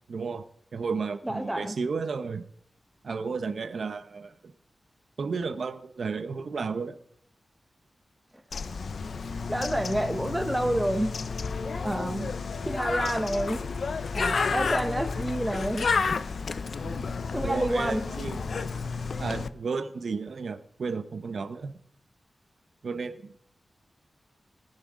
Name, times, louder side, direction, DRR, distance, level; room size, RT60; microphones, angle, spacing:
voice 1, 0.1-0.5 0.7-2.4 3.0-4.3 5.2-7.0 12.0-12.3 16.8-17.0 17.4-18.5 19.2-21.8 22.8-23.4, right 4 dB, 65° right, 0.8 m, -33 dB
voice 2, 1.2-1.8 9.5-11.2 11.8-12.3 12.6-13.6 14.1-15.9 17.3-18.1, right 1 dB, 10° right, 1.2 m, -28 dB
Bird, 8.5-19.5, left 4 dB, 65° left, 0.5 m, -31 dB
19.5 x 9.8 x 3.8 m
wide cardioid pair, 145°, 0 cm